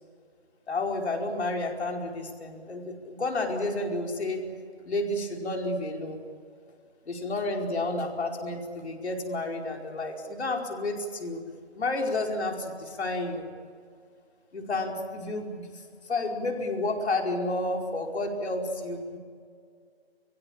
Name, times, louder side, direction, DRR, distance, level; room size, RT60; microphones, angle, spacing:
voice 1, 0.7-4.4 4.8-6.2 7.1-11.4 11.7-13.5 14.5-15.8 16.1-19.2, left 2 dB, 75° left, 1 dB, 5.0 m, -31 dB
30.0 x 18.0 x 8.8 m, 2.1 s
hypercardioid pair, 165°, 33 cm